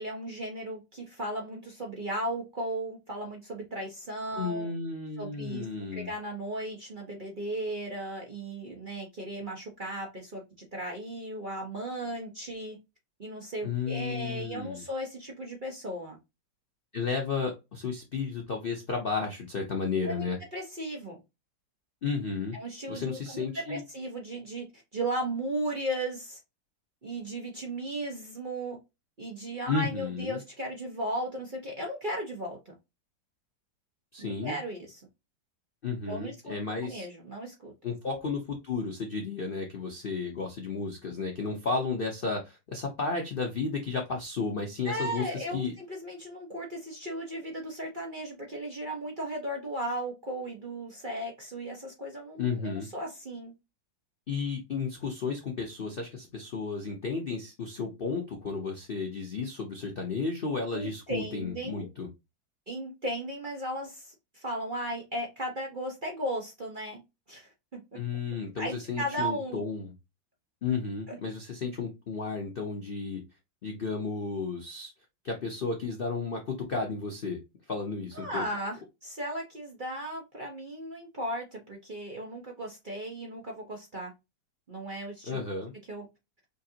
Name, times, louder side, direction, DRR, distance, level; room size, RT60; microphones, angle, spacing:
voice 1, 0.0-4.7 5.2-5.6 5.9-12.8 13.2-16.2 20.0-21.2 22.5-26.4 27.0-28.8 29.2-32.7 34.2-35.0 36.1-36.5 36.8-37.7 44.8-53.5 60.7-61.9 62.7-67.0 67.3-68.0 68.6-69.7 71.1-71.2 78.1-84.1 84.7-85.4 85.9-86.1, right 1 dB, 40° right, 0.7 m, -36 dB
voice 2, 4.3-6.1 13.6-14.8 16.9-20.4 22.0-22.6 22.9-23.8 29.7-30.4 34.1-34.6 35.8-37.1 37.8-45.7 52.4-52.9 54.3-62.1 67.9-69.9 70.6-73.2 73.6-74.9 75.2-77.4 77.7-78.4 85.3-85.7, left 4 dB, 85° left, 0.5 m, -33 dB
5.2 x 2.5 x 2.7 m
omnidirectional pair, 2.1 m